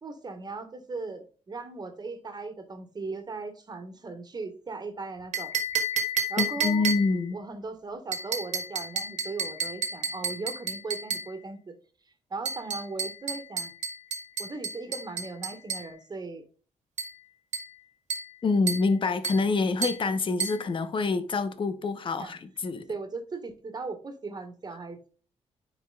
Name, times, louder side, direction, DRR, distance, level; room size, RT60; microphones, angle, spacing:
voice 1, 0.0-5.5 6.3-6.9 7.3-11.7 12.3-13.7 14.4-16.4 22.2-22.3 22.9-25.1, right 3 dB, 35° right, 1.6 m, -38 dB
sound 1, 5.3-7.3 8.1-11.4 12.5-15.9 17.0-17.2 17.5-17.8 18.1-18.4 18.7-18.9 19.2-19.5 19.8-20.1 20.4-20.7, right 4 dB, 80° right, 1.8 m, -32 dB
voice 2, 6.4-7.4 18.4-22.9, left 4 dB, 45° left, 1.0 m, -26 dB
9.9 x 4.9 x 2.4 m
cardioid pair, 105°, 12 cm